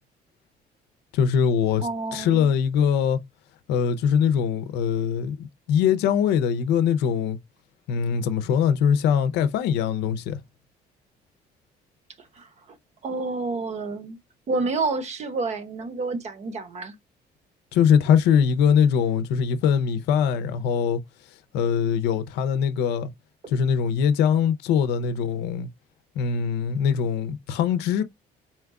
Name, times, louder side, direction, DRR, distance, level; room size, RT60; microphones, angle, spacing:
voice 1, 1.1-3.2 3.7-7.4 7.9-10.4 17.7-21.0 21.5-23.1 23.5-25.7 26.2-28.0, left 7 dB, 90° left, 0.6 m, -22 dB
voice 2, 1.8-2.5 12.2-12.8 13.0-14.2 14.5-16.9, right 3 dB, 40° right, 0.9 m, -29 dB
4.3 x 2.3 x 3.6 m
cardioid pair, 110°, 17 cm